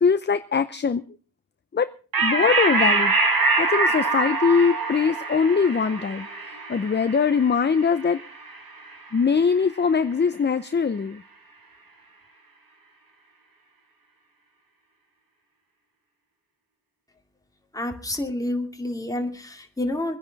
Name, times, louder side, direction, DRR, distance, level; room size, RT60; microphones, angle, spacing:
voice 1, 0.0-1.0 1.7-1.9 2.2-3.1 3.6-6.3 6.7-8.2 9.1-11.2, left 5 dB, 30° left, 12 dB, 0.6 m, -22 dB
sound 1, 2.1-9.0, right 3 dB, 80° right, 4.1 m, -24 dB
voice 2, 17.7-20.2, left 1 dB, 10° left, 3 dB, 2.5 m, -29 dB
24.5 x 10.5 x 4.0 m, 0.36 s
wide cardioid pair, 105°, 35 cm